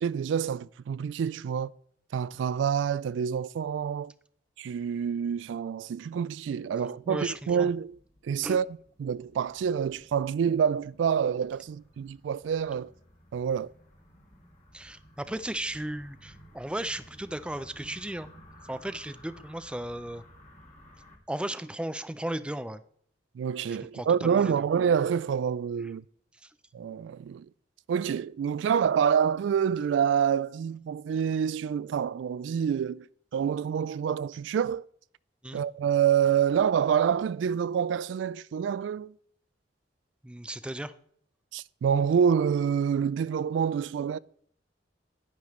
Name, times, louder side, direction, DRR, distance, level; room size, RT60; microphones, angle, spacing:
voice 1, 0.0-1.7 2.1-4.1 4.6-8.0 8.2-8.7 9.0-12.9 13.3-13.7 23.4-26.0 26.7-27.5 27.9-33.0 33.3-34.9 35.5-39.1 41.5-44.2, right 7 dB, 80° right, 0.3 m, -27 dB
sound 1, 7.0-21.2, equal, 40° left, 1.8 m, -55 dB
voice 2, 7.1-7.7 8.4-8.6 14.7-18.3 18.7-20.2 21.3-22.8 23.9-24.5 35.4-35.6 40.2-40.9, right 1 dB, 5° right, 0.4 m, -35 dB
10.5 x 10.0 x 3.1 m
head